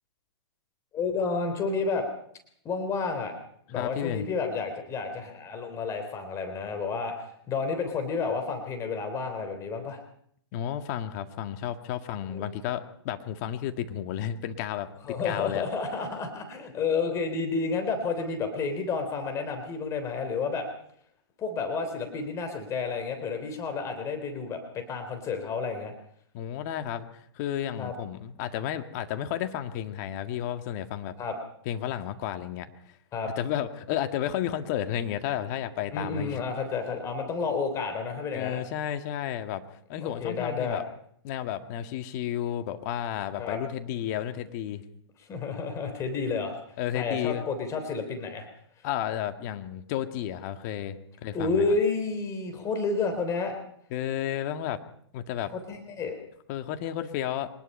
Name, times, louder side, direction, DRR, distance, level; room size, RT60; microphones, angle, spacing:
voice 1, 0.9-2.1 2.7-3.3 3.7-10.0 12.3-12.4 15.0-20.7 21.4-25.9 27.8-27.9 31.2-31.4 33.1-33.3 35.9-38.6 40.0-40.8 43.4-43.6 45.3-46.5 46.9-48.5 51.3-53.6 55.5-56.2, left 4 dB, 20° left, 6 dB, 3.5 m, -30 dB
voice 2, 3.7-4.3 10.5-14.9 15.2-15.6 26.3-31.2 31.7-32.7 33.4-36.4 38.3-39.6 39.9-40.8 41.2-44.8 46.8-47.4 48.8-51.7 53.9-54.8 55.1-55.5 56.5-57.5, left 10 dB, 35° left, 8 dB, 1.9 m, -32 dB
24.0 x 20.0 x 5.5 m, 0.67 s
hypercardioid pair, 130°, 15 cm